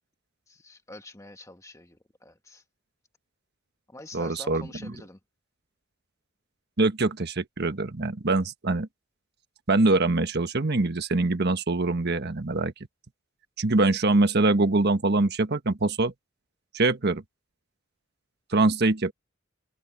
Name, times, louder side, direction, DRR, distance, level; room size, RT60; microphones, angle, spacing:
voice 1, 0.5-2.6 3.9-5.2, left 2 dB, 15° left, 1.5 m, -46 dB
voice 2, 4.1-4.9 6.8-8.9 9.7-12.7 13.6-16.1 16.7-17.2 18.5-19.1, right 2 dB, 50° right, 1.3 m, -24 dB
head